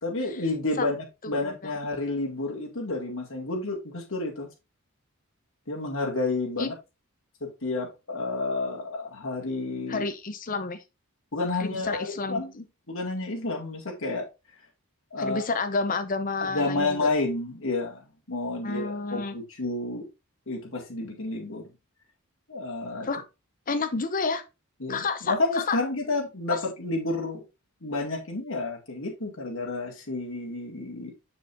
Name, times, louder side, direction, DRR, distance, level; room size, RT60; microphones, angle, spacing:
voice 1, 0.0-4.5 5.7-6.7 7.4-10.1 11.3-12.5 12.9-14.3 15.1-15.4 16.4-20.1 20.5-21.6 22.5-23.1 24.8-27.4 27.8-31.1, left 2 dB, 65° left, 2.1 m, -30 dB
voice 2, 9.9-10.8 11.6-12.6 15.2-17.1 18.6-19.3 23.0-23.2 23.7-24.4 24.9-25.8 26.5-26.6, left 4 dB, 40° left, 0.7 m, -30 dB
6.8 x 6.2 x 2.6 m
head